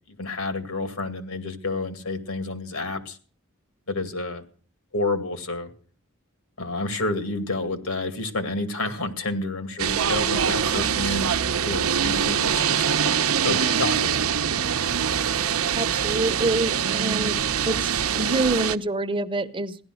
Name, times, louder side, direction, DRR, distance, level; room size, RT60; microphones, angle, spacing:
voice 1, 0.2-3.2 3.9-4.4 4.9-5.7 6.6-11.3 11.7-14.2, left 2 dB, 80° left, 8 dB, 2.4 m, -29 dB
sound 1, 9.8-18.8, right 8 dB, 85° right, 0.7 m, -24 dB
voice 2, 15.8-17.4 17.7-19.8, right 2 dB, 25° right, 11 dB, 0.8 m, -26 dB
16.5 x 11.5 x 6.3 m, 0.41 s
head